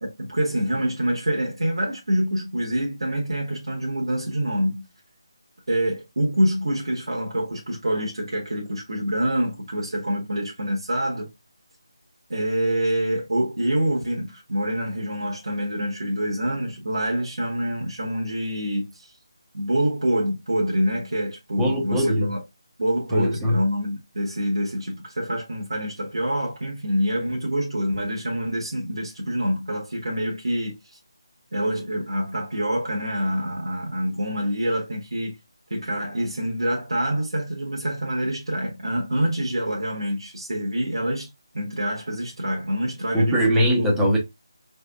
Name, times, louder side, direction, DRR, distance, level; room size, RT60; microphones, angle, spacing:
voice 1, 0.0-4.8 5.7-11.3 12.3-19.1 19.5-22.4 22.8-30.7 31.5-35.3 35.7-41.3 41.5-43.7, equal, 80° right, 1.3 m, -26 dB
voice 2, 21.6-22.3 23.1-23.6 43.1-44.2, equal, 5° right, 0.6 m, -21 dB
4.7 x 3.4 x 2.3 m
figure-of-eight pair, 170°, 3 cm